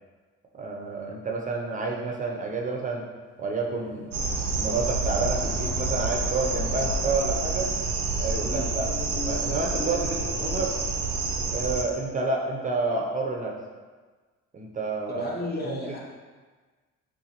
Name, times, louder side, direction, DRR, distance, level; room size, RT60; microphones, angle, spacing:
voice 1, 0.6-3.1 3.4-4.1 4.6-7.7 8.2-8.9 9.2-10.7 11.5-13.6 14.5-15.3 15.6-16.0, right 3 dB, 25° right, 0 dB, 0.5 m, -29 dB
sound 1, 3.3-8.0 8.8-12.2, left 3 dB, 65° left, 0.5 m, -43 dB
sound 2, 4.1-11.8, right 3 dB, 75° right, 0.5 m, -28 dB
voice 2, 15.1-16.0, left 1 dB, 35° left, -3 dB, 0.8 m, -33 dB
3.9 x 2.3 x 2.8 m, 1.4 s
cardioid pair, 90°, 30 cm